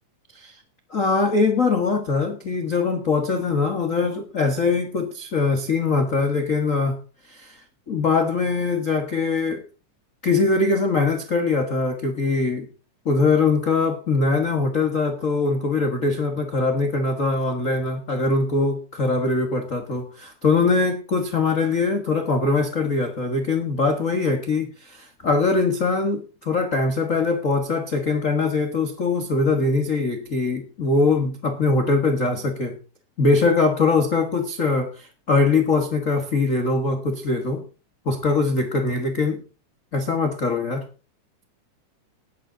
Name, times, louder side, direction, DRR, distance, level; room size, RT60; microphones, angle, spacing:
voice 1, 0.9-7.0 7.3-7.6 7.9-9.6 10.2-12.7 13.0-32.8 33.2-37.6 38.0-39.4 39.9-40.8, left 3 dB, 80° left, 4 dB, 0.7 m, -22 dB
18.5 x 7.7 x 3.8 m, 0.35 s
omnidirectional pair, 3.7 m